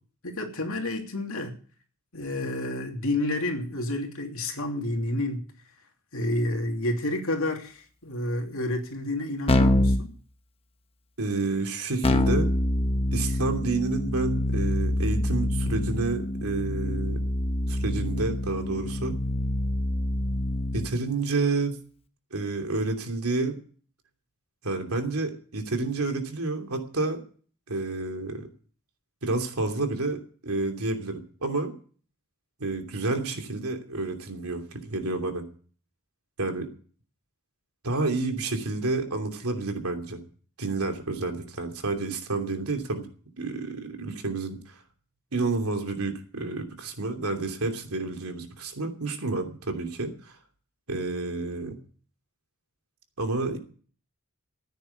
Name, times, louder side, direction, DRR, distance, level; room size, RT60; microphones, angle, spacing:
voice 1, 0.2-1.5 2.1-5.4 6.1-10.1, left 1 dB, 65° left, 3 dB, 2.9 m, -30 dB
Keyboard (musical), 9.5-10.0 12.0-20.9, left 1 dB, 25° left, 1.2 m, -26 dB
voice 2, 11.2-12.5 13.1-17.2 17.7-19.1 20.7-21.8 22.3-23.6 24.6-27.2 27.7-28.5 29.2-31.7 32.6-35.5 36.4-36.7 37.8-40.2 40.6-43.1 43.4-44.7 45.3-50.3 50.9-51.8 53.2-53.6, right 3 dB, 85° right, 4 dB, 2.9 m, -29 dB
15.0 x 9.5 x 6.9 m, 0.43 s
head